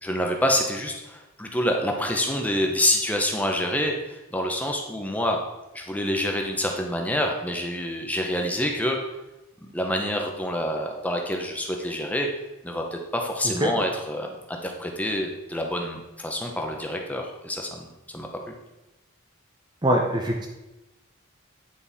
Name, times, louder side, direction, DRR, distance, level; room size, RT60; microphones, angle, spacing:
voice 1, 0.0-5.4 5.7-9.0 9.6-12.3 12.6-18.5, left 1 dB, 5° left, 2 dB, 0.9 m, -27 dB
voice 2, 19.8-20.5, right 1 dB, 20° right, 1 dB, 0.6 m, -22 dB
9.6 x 5.4 x 4.2 m, 0.99 s
head